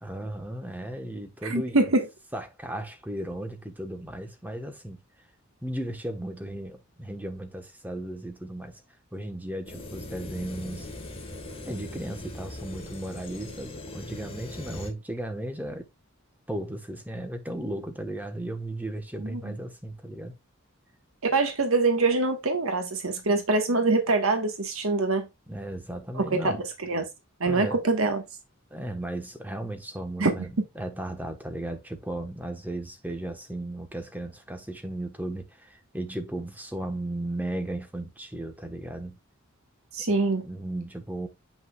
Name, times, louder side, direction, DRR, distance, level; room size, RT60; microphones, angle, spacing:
voice 1, 0.0-1.8 2.3-5.0 5.6-8.8 9.1-10.9 11.7-15.9 16.5-20.3 25.5-26.6 27.4-27.8 28.7-39.2 40.4-41.3, right 1 dB, 10° right, 1.1 m, -35 dB
voice 2, 1.5-2.1 19.2-19.4 21.3-25.3 26.1-26.2 26.9-27.0 27.4-28.2 30.2-30.5 39.9-40.4, right 3 dB, 70° right, 1.3 m, -24 dB
sound 1, 9.7-14.9, left 1 dB, 25° left, 1.5 m, -40 dB
7.8 x 5.7 x 2.3 m
head